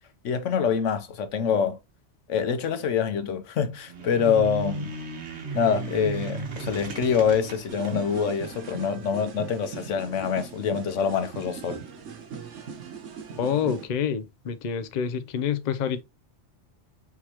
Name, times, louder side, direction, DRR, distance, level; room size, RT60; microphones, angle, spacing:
voice 1, 0.2-1.8 2.3-5.0 5.5-11.8, left 7 dB, 90° left, 1.2 m, -25 dB
sound 1, 3.8-8.8, right 4 dB, 65° right, 1.3 m, -36 dB
sound 2, 7.7-13.9, right 6 dB, 85° right, 1.2 m, -40 dB
voice 2, 13.4-16.0, left 7 dB, 50° left, 0.6 m, -27 dB
4.6 x 3.5 x 2.8 m
omnidirectional pair, 1.2 m